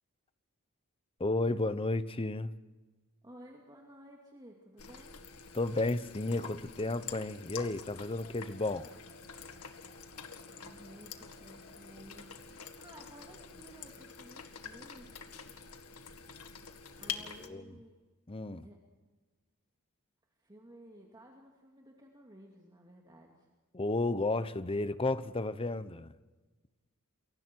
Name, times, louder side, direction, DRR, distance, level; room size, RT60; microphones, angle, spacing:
voice 1, 1.2-2.5 5.5-8.9 17.4-17.6 18.3-18.7 23.7-26.1, left 2 dB, 25° left, 0.9 m, -32 dB
voice 2, 3.2-5.2 10.5-15.2 16.9-18.0 18.6-18.8 20.4-23.5, right 1 dB, 20° right, 2.5 m, -55 dB
sound 1, 4.8-17.5, left 6 dB, 85° left, 1.9 m, -47 dB
sound 2, 8.0-15.8 16.1-16.3, left 3 dB, 60° left, 5.4 m, -62 dB
29.0 x 23.0 x 4.6 m
head